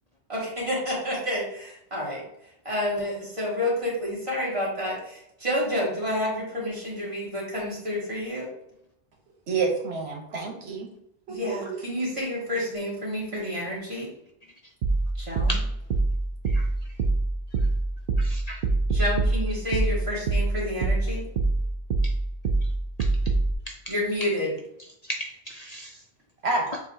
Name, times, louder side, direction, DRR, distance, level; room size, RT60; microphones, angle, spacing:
voice 1, 0.3-2.2 2.7-8.5 11.3-14.1 15.2-15.6 18.9-21.2 23.9-24.5, left 1 dB, 30° right, -5 dB, 1.7 m, -29 dB
voice 2, 9.5-10.9 11.3-11.8 26.4-26.7, right 4 dB, 90° right, 2 dB, 1.2 m, -28 dB
sound 1, 14.8-23.5, right 3 dB, 65° right, 0.7 m, -25 dB
voice 3, 18.2-18.6 23.0-23.1 23.7-23.9 25.1-26.0, equal, 55° left, 2 dB, 0.4 m, -36 dB
6.9 x 2.8 x 2.7 m, 0.77 s
omnidirectional pair, 1.1 m